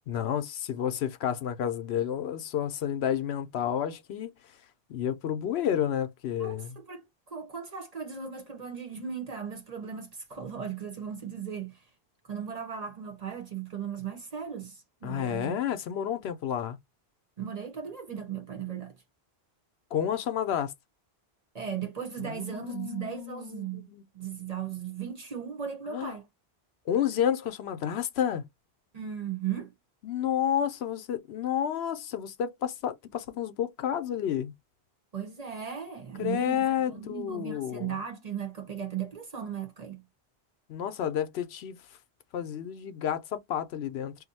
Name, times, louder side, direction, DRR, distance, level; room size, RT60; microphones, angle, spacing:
voice 1, 0.1-4.5 4.9-6.8 15.0-16.8 19.9-20.7 22.2-24.0 25.9-26.1 26.9-28.5 30.0-34.5 36.2-38.0 40.7-41.8 42.3-44.2, left 9 dB, 80° left, 0.9 m, -30 dB
voice 2, 6.4-11.8 12.2-15.6 17.4-18.9 21.5-23.9 24.1-26.3 28.9-29.7 35.1-40.0, right 8 dB, 40° right, 0.8 m, -37 dB
2.6 x 2.1 x 4.0 m
omnidirectional pair, 1.1 m